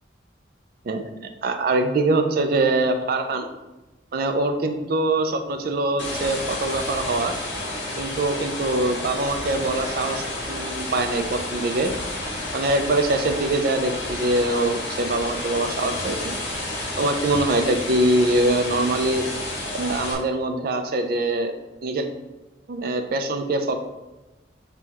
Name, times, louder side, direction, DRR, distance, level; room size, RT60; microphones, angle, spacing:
voice 1, 1.4-3.5 4.1-7.3 8.0-11.9 12.5-16.3 17.0-19.2 19.7-21.5 21.8-22.1 22.7-23.8, right 2 dB, 50° right, 7 dB, 0.3 m, -23 dB
sound 1, 6.0-20.1, left 1 dB, 85° left, 1.4 m, -31 dB
6.1 x 2.2 x 2.8 m, 1.1 s
head